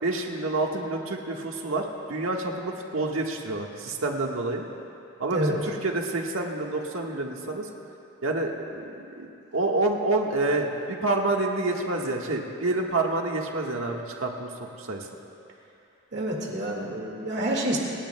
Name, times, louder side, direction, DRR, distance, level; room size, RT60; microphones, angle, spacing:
voice 1, 0.0-4.6 5.2-7.7 8.2-9.3 9.5-15.1, right 2 dB, 85° right, 1 dB, 1.5 m, -28 dB
voice 2, 16.1-17.8, right 1 dB, 60° right, -1 dB, 2.0 m, -28 dB
28.0 x 18.5 x 2.3 m, 2.8 s
head